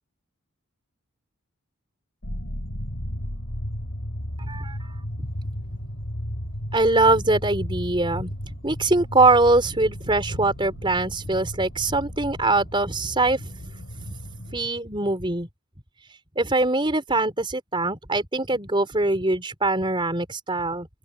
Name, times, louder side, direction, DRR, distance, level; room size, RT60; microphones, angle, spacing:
sound 1, 2.2-14.7, equal, 65° left, 5.0 m, -34 dB
voice 1, 4.4-4.8 5.2-5.3 6.7-8.3 8.6-13.5 13.9-14.1 14.5-15.5 16.4-20.9, right 2 dB, 25° right, 4.4 m, -22 dB
open air
head